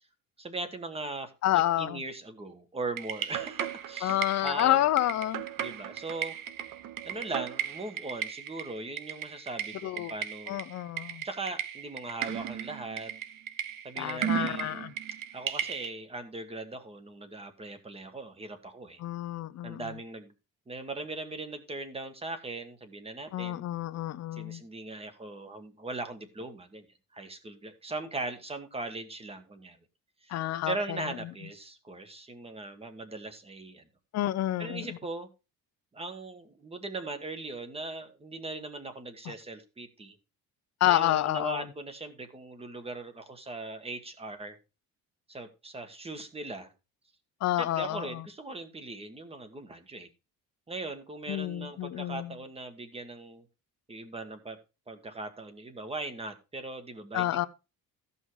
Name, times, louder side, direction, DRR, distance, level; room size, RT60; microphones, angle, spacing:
voice 1, 0.4-4.9 5.6-6.3 7.0-10.6 11.2-13.1 13.8-14.9 15.3-19.0 19.6-20.3 20.7-23.6 24.3-26.8 27.1-29.8 30.2-30.3 30.7-33.8 34.6-35.3 35.9-40.2 40.9-44.6 45.3-46.7 47.6-50.1 50.7-53.5 53.9-54.6 54.9-57.5, right 2 dB, 15° right, 1.4 m, -39 dB
voice 2, 1.4-2.0 4.0-5.4 9.8-10.1 10.5-11.2 14.0-14.9 19.0-19.9 23.3-24.6 30.3-31.1 34.1-35.0 39.3-39.4 40.8-41.6 47.4-48.2 51.3-52.3 57.1-57.5, left 14 dB, 50° left, 0.6 m, -29 dB
sound 1, 3.0-15.9, right 10 dB, 70° right, 1.1 m, -36 dB
14.5 x 5.5 x 4.7 m
cardioid pair, 155°, 35 cm